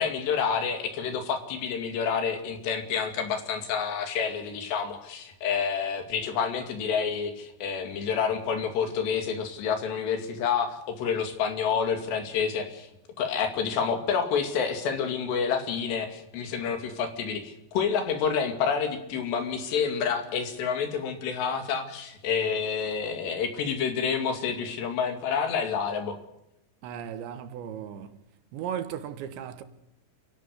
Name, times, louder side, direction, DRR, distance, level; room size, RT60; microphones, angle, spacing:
voice 1, 0.0-12.9 13.2-26.2, left 6 dB, 75° left, 4.5 m, -28 dB
voice 2, 26.8-28.2 28.5-29.6, right 9 dB, 90° right, 3.7 m, -36 dB
29.0 x 12.0 x 8.1 m
omnidirectional pair, 5.1 m